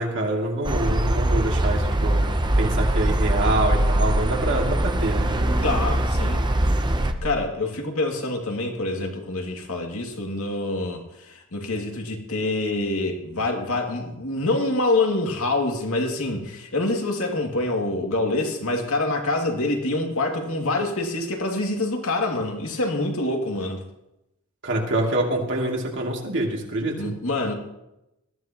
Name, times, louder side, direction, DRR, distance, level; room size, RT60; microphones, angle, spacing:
voice 1, 0.0-2.3 2.6-5.7 24.6-27.1, right 1 dB, 55° right, -1 dB, 2.9 m, -26 dB
sound 1, 0.6-7.1, right 1 dB, 20° right, 0.8 m, -22 dB
voice 2, 5.6-6.5 7.2-23.8 27.0-27.5, left 2 dB, 65° left, 1 dB, 2.6 m, -26 dB
20.5 x 14.5 x 3.1 m, 0.88 s
head